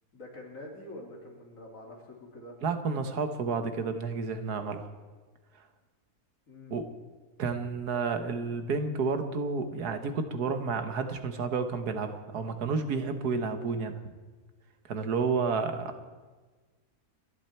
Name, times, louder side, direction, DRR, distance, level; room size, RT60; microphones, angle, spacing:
voice 1, 0.1-2.6 6.5-6.8 15.6-15.8, left 1 dB, 55° left, -1 dB, 3.5 m, -46 dB
voice 2, 2.6-4.9 6.7-6.9 7.4-14.0 14.9-16.0, right 4 dB, 85° right, 8 dB, 1.8 m, -31 dB
28.0 x 11.5 x 4.5 m, 1.3 s
omnidirectional pair, 1.6 m